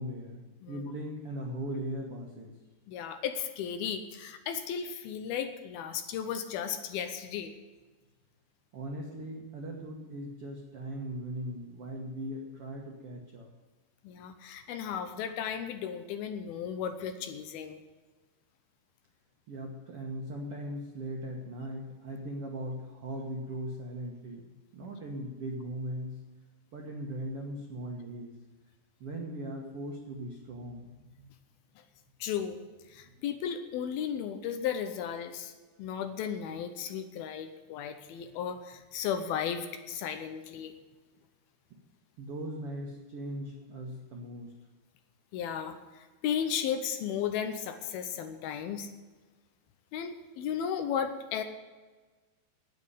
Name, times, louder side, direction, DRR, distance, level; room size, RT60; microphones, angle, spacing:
voice 1, 0.0-2.5 8.7-13.5 19.5-26.2 26.7-28.3 29.0-31.3 42.2-44.5, right 1 dB, 80° right, 1 dB, 1.3 m, -39 dB
voice 2, 2.9-7.6 14.0-17.8 24.8-24.9 32.2-32.6 32.9-35.5 35.8-40.7 45.3-48.9 49.9-51.4, left 8 dB, 75° left, 8 dB, 2.5 m, -35 dB
9.6 x 8.9 x 9.5 m, 1.3 s
omnidirectional pair, 4.8 m